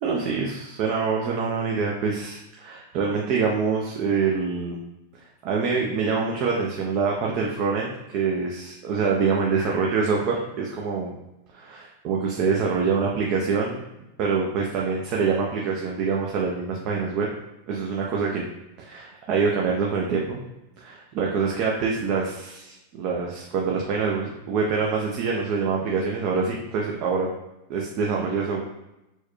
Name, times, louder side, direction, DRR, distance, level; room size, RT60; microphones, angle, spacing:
voice 1, 0.0-4.8 5.4-11.1 11.5-13.8 14.2-17.3 17.7-18.5 18.8-20.4 20.8-27.3 27.7-28.6, right 5 dB, 50° right, -1 dB, 0.6 m, -25 dB
4.3 x 2.3 x 3.1 m, 0.93 s
hypercardioid pair, 110°, 0 cm